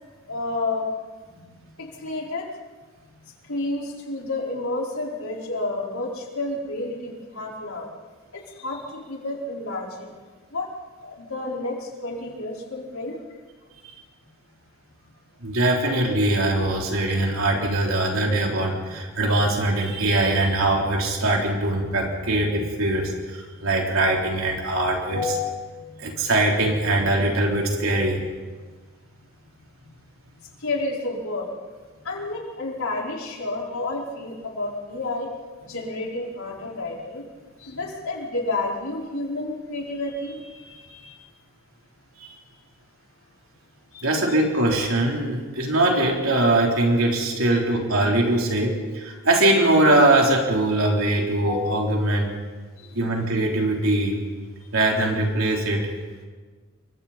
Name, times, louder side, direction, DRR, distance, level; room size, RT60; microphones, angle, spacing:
voice 1, 0.3-0.9 1.8-2.5 3.5-7.9 8.3-10.1 10.5-10.7 11.0-13.2 30.6-31.5 32.0-35.3 35.6-37.2 37.6-41.2 43.9-44.1 47.5-47.6 52.8-52.9 54.6-54.7, left 2 dB, 80° left, -2 dB, 5.0 m, -30 dB
voice 2, 15.4-25.6 26.0-28.2 42.2-42.4 44.0-52.3 52.9-54.2 54.7-55.9, right 1 dB, 70° right, -1 dB, 3.9 m, -22 dB
29.0 x 25.0 x 4.4 m, 1.4 s
head